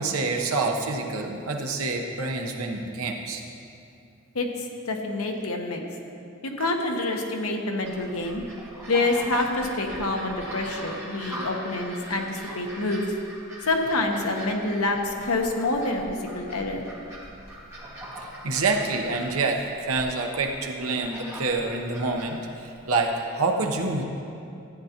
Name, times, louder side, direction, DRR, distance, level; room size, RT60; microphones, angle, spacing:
voice 1, 0.0-3.4 6.6-6.7 18.2-19.6 19.9-24.0, right 3 dB, 90° right, 2 dB, 0.9 m, -27 dB
voice 2, 4.9-5.8 6.4-8.4 8.9-13.0 13.6-16.0 16.3-16.9, left 2 dB, 90° left, 2 dB, 1.0 m, -27 dB
sound 1, 7.8-23.0, right 1 dB, 15° right, 1.8 m, -41 dB
13.5 x 9.2 x 2.9 m, 2.6 s
head